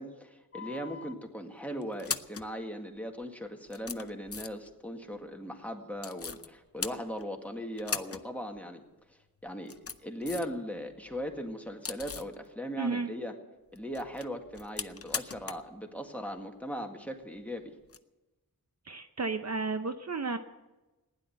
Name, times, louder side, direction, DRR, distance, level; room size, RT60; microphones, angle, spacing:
voice 1, 0.0-8.8 9.4-9.8 10.0-13.3 13.7-17.7, equal, 5° left, 2 dB, 1.9 m, -39 dB
sound 1, 0.5-1.1 1.8-2.5 3.2-3.3 3.7-4.7 6.0-6.5 6.8-7.4 7.8-8.3 8.5-8.6 9.5-10.6 10.9-12.4 13.8-15.7 16.0-16.1 17.8-18.0, left 5 dB, 40° left, 0.6 m, -39 dB
voice 2, 12.8-13.1 18.9-20.4, right 4 dB, 45° right, 8 dB, 0.7 m, -32 dB
15.5 x 10.5 x 7.9 m, 1.1 s
wide cardioid pair, 70°, 36 cm